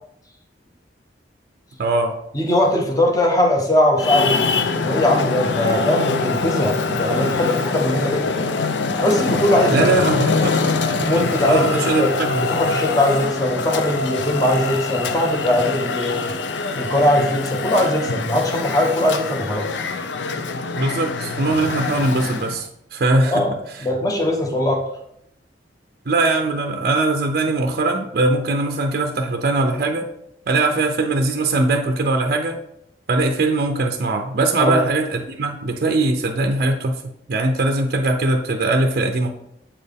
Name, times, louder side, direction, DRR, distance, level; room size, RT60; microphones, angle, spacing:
voice 1, 1.8-2.1 9.7-10.6 11.0-12.6 20.8-23.5 23.7-23.8 26.1-30.1 30.5-32.6 33.1-37.0 37.3-39.3, right 2 dB, 55° right, 5 dB, 0.5 m, -21 dB
voice 2, 2.3-4.5 4.8-8.4 9.0-9.9 11.1-12.2 12.5-16.3 16.8-19.7 23.2-24.8 34.6-34.8, left 1 dB, 20° left, 1 dB, 1.0 m, -20 dB
Traffic noise roadway noise, 4.0-22.6, left 4 dB, 85° left, 0.5 m, -24 dB
7.3 x 4.4 x 3.4 m, 0.76 s
head